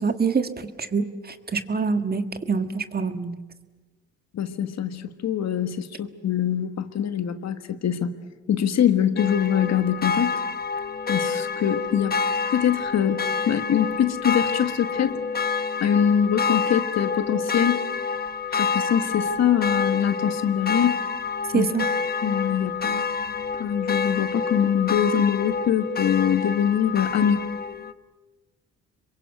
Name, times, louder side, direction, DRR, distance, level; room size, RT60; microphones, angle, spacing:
voice 1, 0.0-3.4 21.5-21.9, right 5 dB, 30° right, 9 dB, 1.6 m, -25 dB
voice 2, 4.3-8.1 8.5-10.3 11.1-12.2 12.5-15.2 15.8-17.8 18.5-20.9 21.5-21.7 22.2-27.4, left 9 dB, 60° left, 10 dB, 1.5 m, -23 dB
sound 1, 9.2-27.9, left 5 dB, 30° left, 1.2 m, -28 dB
26.5 x 23.0 x 8.1 m, 1.2 s
cardioid pair, 90°, 30 cm